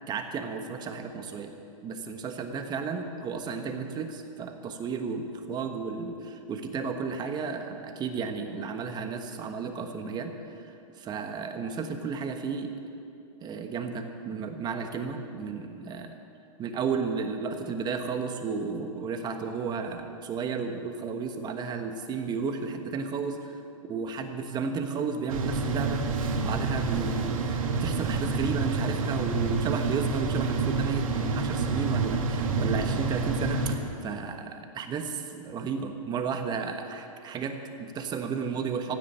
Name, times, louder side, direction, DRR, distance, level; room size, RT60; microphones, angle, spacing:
voice 1, 0.0-1.5 1.8-10.3 10.6-12.7 13.4-16.2 16.6-23.6 23.9-39.0, right 5 dB, 25° right, 6 dB, 1.3 m, -33 dB
sound 1, 25.3-33.8, right 4 dB, 75° right, 1.7 m, -28 dB
16.0 x 7.7 x 9.2 m, 2.7 s
hypercardioid pair, 130°, 17 cm